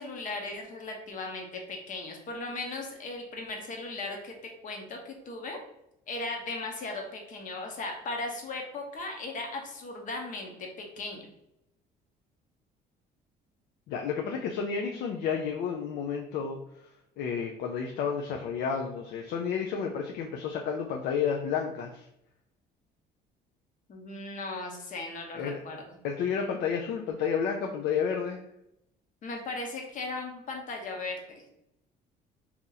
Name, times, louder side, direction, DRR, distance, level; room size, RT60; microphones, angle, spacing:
voice 1, 0.0-4.3 4.6-5.6 6.1-11.3 23.9-26.0 29.2-31.4, left 2 dB, 50° left, 2 dB, 0.9 m, -37 dB
voice 2, 13.9-16.6 17.2-22.0 25.3-25.6 26.0-28.4, left 6 dB, 75° left, 2 dB, 0.4 m, -31 dB
2.9 x 2.5 x 3.9 m, 0.80 s
cardioid pair, 110°, 17 cm